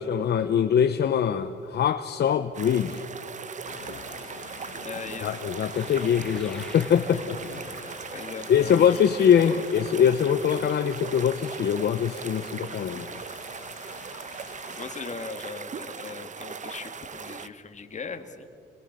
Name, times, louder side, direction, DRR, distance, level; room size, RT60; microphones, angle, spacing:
voice 1, 0.0-3.0 5.2-7.4 8.5-13.1, left 8 dB, 55° left, 9 dB, 0.9 m, -23 dB
sound 1, 2.5-17.5, right 6 dB, 40° right, 1.0 m, -39 dB
sound 2, 2.7-3.4 5.4-8.4, left 1 dB, 5° left, 2.8 m, -49 dB
sound 3, 3.7-15.1, left 9 dB, 90° left, 1.5 m, -46 dB
voice 2, 4.8-5.4 7.1-7.2 8.1-9.6 14.7-18.5, left 5 dB, 35° left, 7 dB, 2.1 m, -39 dB
27.5 x 22.0 x 6.8 m, 2.5 s
cardioid pair, 90°, 20 cm